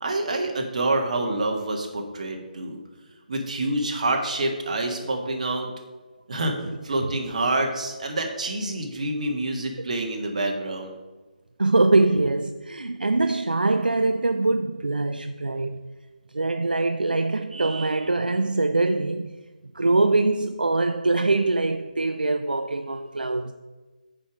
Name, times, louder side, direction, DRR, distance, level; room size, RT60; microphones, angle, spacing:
voice 1, 0.0-2.8 3.3-5.7 6.3-10.9, right 2 dB, 50° right, 1.5 m, -27 dB
voice 2, 11.6-15.9 16.3-19.3 19.7-23.5, right 2 dB, 80° right, 0.4 m, -23 dB
8.6 x 5.1 x 5.0 m
figure-of-eight pair, 150°, 5 cm